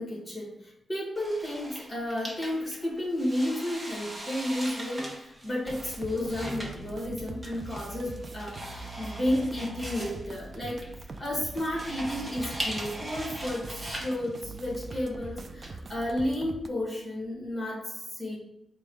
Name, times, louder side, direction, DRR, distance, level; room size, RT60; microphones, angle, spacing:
voice 1, 0.0-10.8 11.2-18.4, left 1 dB, 20° left, -3 dB, 1.4 m, -32 dB
sound 1, 1.2-15.7, right 1 dB, 15° right, 0.8 m, -40 dB
sound 2, 5.7-16.7, right 3 dB, 45° right, 0.3 m, -42 dB
4.6 x 2.2 x 3.4 m, 0.86 s
wide cardioid pair, 125°, 0 cm